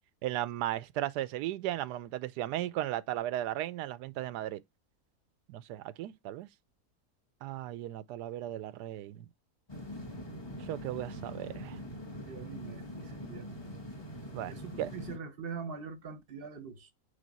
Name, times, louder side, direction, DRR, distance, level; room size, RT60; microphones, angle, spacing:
voice 1, 0.2-4.6 5.5-6.5 7.4-9.3 10.6-11.8 14.3-14.5 14.8-14.9, right 13 dB, 90° right, 1.2 m, -36 dB
sound 1, 9.7-15.2, equal, 15° left, 1.3 m, -43 dB
voice 2, 12.2-13.6 14.5-16.9, right 5 dB, 40° right, 1.0 m, -43 dB
8.3 x 3.6 x 4.1 m
omnidirectional pair, 1.7 m